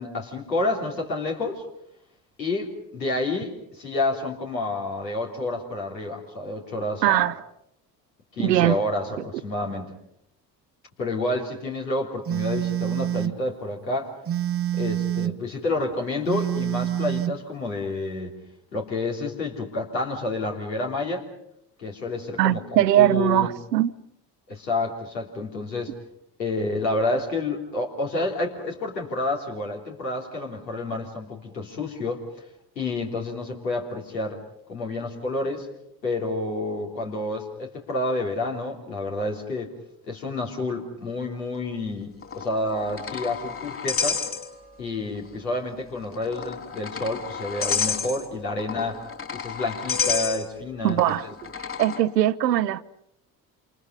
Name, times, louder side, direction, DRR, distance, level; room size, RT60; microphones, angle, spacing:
voice 1, 0.0-1.6 2.4-7.2 8.3-9.9 11.0-14.1 14.7-18.3 18.7-21.3 21.8-23.5 24.5-25.9 26.4-32.2 32.8-34.4 34.7-35.7 36.0-39.7 40.0-44.2 44.8-49.0 49.3-51.2, left 2 dB, 80° left, 3.7 m, -29 dB
voice 2, 7.0-7.3 8.4-8.8 22.4-23.9 50.8-51.2 51.8-52.8, right 13 dB, 75° right, 0.9 m, -20 dB
Telephone, 12.3-13.4 14.3-15.4 16.3-17.4, right 12 dB, 30° right, 0.9 m, -27 dB
sound 1, 42.2-44.9 45.2-45.3 46.1-52.0, left 6 dB, 25° left, 3.7 m, -30 dB
28.0 x 28.0 x 5.4 m
figure-of-eight pair, 55°, 49 cm